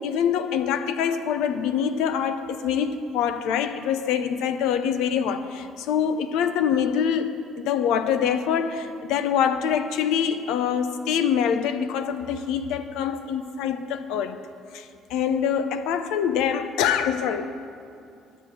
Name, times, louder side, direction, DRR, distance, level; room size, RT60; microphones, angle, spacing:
voice 1, 0.0-14.4 14.7-17.5, left 8 dB, 70° left, 9 dB, 0.7 m, -25 dB
10.5 x 8.1 x 7.6 m, 2.5 s
hypercardioid pair, 55°, 0 cm